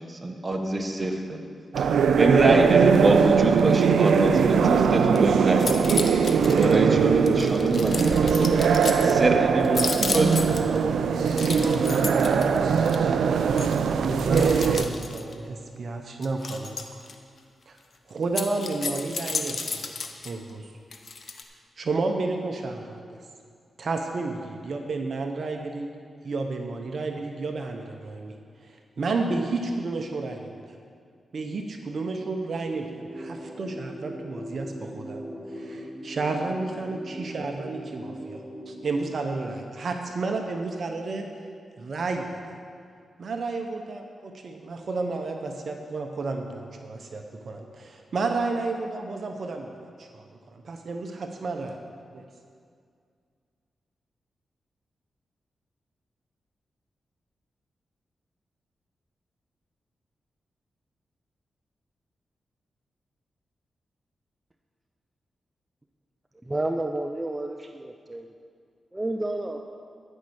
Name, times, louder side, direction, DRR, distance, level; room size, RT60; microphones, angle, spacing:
voice 1, 0.1-1.4 1.8-1.9 2.2-5.7 6.5-8.6 9.0-10.5, right 2 dB, 35° right, 3 dB, 1.4 m, -24 dB
sound 1, 1.7-14.8, right 6 dB, 85° right, 0.4 m, -21 dB
sound 2, 5.0-5.2 5.5-6.8 7.2-9.1 9.6-10.8 11.2-13.1 13.6-13.7 14.3-15.3 16.2-17.1 18.2-20.3 20.9-21.4, left 4 dB, 60° left, 0.9 m, -33 dB
voice 2, 11.2-13.1 14.0-16.8 17.7-17.8 18.1-19.9 20.2-20.7 21.8-23.2 23.8-25.9 26.2-28.3 28.6-30.6 31.3-35.2 35.5-41.3 41.8-42.6 43.2-49.7 50.0-51.7 52.1-52.2, right 3 dB, 65° right, 4 dB, 0.8 m, -31 dB
sound 3, 32.8-38.8, equal, ahead, 2.3 m, -40 dB
voice 3, 66.4-68.3 68.9-69.6, right 2 dB, 20° right, 4 dB, 0.6 m, -30 dB
13.0 x 5.4 x 6.4 m, 2.2 s
cardioid pair, 55°, 0 cm